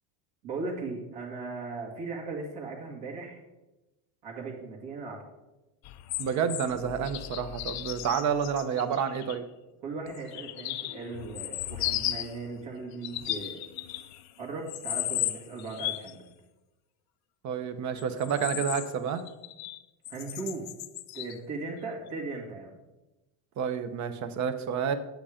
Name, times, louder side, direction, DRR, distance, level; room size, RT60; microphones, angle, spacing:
voice 1, 0.4-3.4 4.2-5.3 9.8-13.6 14.4-16.2 20.1-20.7 21.1-22.7, right 3 dB, 55° right, -2 dB, 2.3 m, -38 dB
sound 1, 5.8-9.4 10.1-12.4 12.9-14.3 14.7-16.1 18.0-19.8 20.1-21.4 22.1-22.2, left 14 dB, 40° left, 0.4 m, -35 dB
voice 2, 6.2-9.4 17.4-19.2 23.6-24.9, right 7 dB, 35° right, 11 dB, 0.8 m, -29 dB
8.6 x 8.2 x 5.0 m, 1.0 s
cardioid pair, 155°, 47 cm